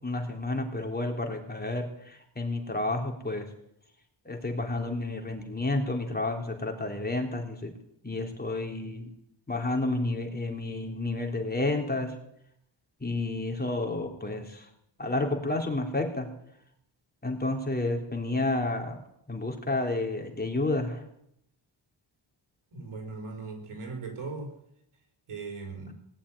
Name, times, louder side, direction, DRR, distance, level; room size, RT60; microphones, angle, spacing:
voice 1, 0.0-3.5 4.3-7.7 8.0-9.1 9.5-12.1 13.0-14.7 15.0-16.3 17.2-19.0 19.3-21.0, left 2 dB, 20° left, 2 dB, 3.6 m, -30 dB
voice 2, 22.7-24.5 25.3-25.9, right 3 dB, 90° right, 2 dB, 4.8 m, -38 dB
19.0 x 7.3 x 9.9 m, 0.76 s
cardioid pair, 80°, 48 cm